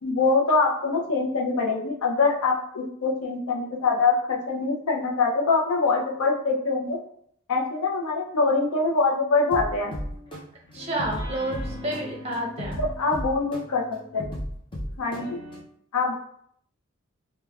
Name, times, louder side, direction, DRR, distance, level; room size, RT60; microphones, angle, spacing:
voice 1, 0.0-7.0 7.5-9.9 12.8-14.2 15.0-15.4 15.9-16.1, left 3 dB, 85° left, 1 dB, 0.5 m, -24 dB
sound 1, 9.5-15.6, equal, 25° left, 0.5 m, -35 dB
voice 2, 10.7-12.8, right 1 dB, 30° right, -2 dB, 0.6 m, -30 dB
3.3 x 2.1 x 2.3 m, 0.68 s
head